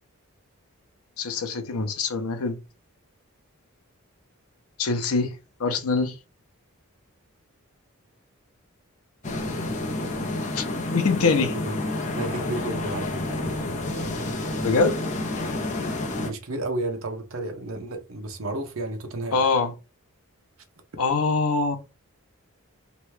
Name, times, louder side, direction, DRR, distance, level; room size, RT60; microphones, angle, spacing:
voice 1, 1.2-2.6 4.8-5.3 5.6-6.1 10.6-10.7 10.9-11.6 14.6-15.0 19.3-19.7 21.0-21.8, left 4 dB, 85° left, 0.6 m, -23 dB
sound 1, 9.2-16.3, left 2 dB, 35° left, 0.6 m, -29 dB
voice 2, 11.4-11.8 12.1-13.6 16.2-19.4, right 2 dB, 70° right, 0.8 m, -32 dB
3.0 x 2.2 x 3.1 m
head